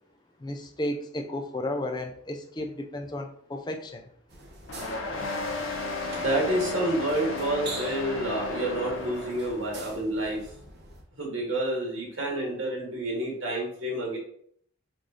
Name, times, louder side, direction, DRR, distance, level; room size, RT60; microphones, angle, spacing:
voice 1, 0.4-4.1, left 1 dB, 20° left, 5 dB, 0.4 m, -33 dB
sound 1, 4.3-11.0, right 2 dB, 50° right, 0.9 m, -45 dB
sound 2, 4.7-9.8, left 3 dB, 75° left, 0.8 m, -33 dB
voice 2, 6.2-10.4 11.1-14.2, right 1 dB, 70° right, -2 dB, 1.8 m, -29 dB
4.8 x 2.6 x 3.8 m, 0.63 s
head